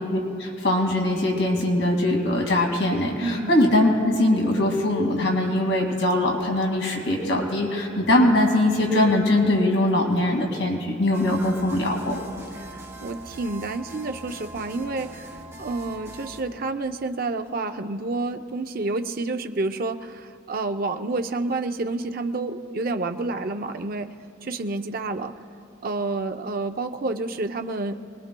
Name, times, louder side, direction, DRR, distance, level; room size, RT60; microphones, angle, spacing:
voice 1, 0.0-12.2, left 1 dB, 70° left, 1 dB, 2.2 m, -22 dB
voice 2, 3.2-3.5 12.6-15.3 15.6-24.1 24.4-25.3 25.8-28.0, right 3 dB, 45° right, 6 dB, 0.5 m, -29 dB
sound 1, 11.1-16.4, right 1 dB, 15° right, 2.3 m, -42 dB
24.5 x 20.5 x 2.2 m, 2.4 s
head